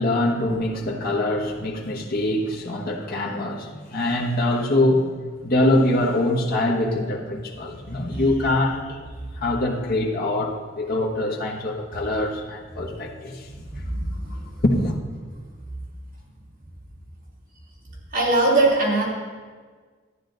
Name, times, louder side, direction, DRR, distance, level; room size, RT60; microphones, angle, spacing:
voice 1, 0.0-5.1 5.4-9.0 9.4-13.5 14.6-15.0, left 1 dB, 50° left, -2 dB, 1.3 m, -23 dB
voice 2, 13.5-14.4 18.1-19.0, right 2 dB, 45° right, -5 dB, 3.2 m, -21 dB
12.5 x 9.8 x 4.0 m, 1.5 s
head